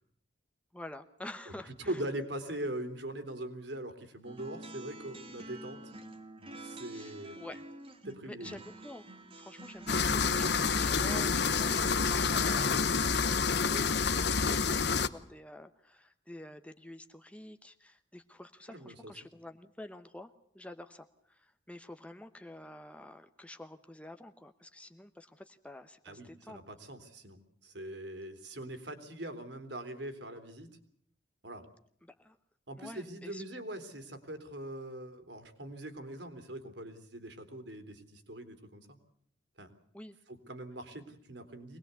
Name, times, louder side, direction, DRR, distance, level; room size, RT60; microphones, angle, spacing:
voice 1, 0.7-2.0 6.9-7.6 8.2-26.6 32.0-32.4 32.8-33.4 39.9-40.2, left 1 dB, 5° left, 7 dB, 0.9 m, -49 dB
voice 2, 1.5-5.8 6.6-7.4 8.0-8.6 18.7-19.1 26.0-30.7 31.4-31.7 32.7-39.0 39.6-39.7 40.3-41.8, right 1 dB, 65° right, 8 dB, 3.4 m, -42 dB
sound 1, 4.2-12.1, right 2 dB, 30° right, 2.5 m, -48 dB
sound 2, 9.9-15.1, left 5 dB, 60° left, 1.0 m, -28 dB
24.5 x 20.0 x 8.2 m, 0.65 s
head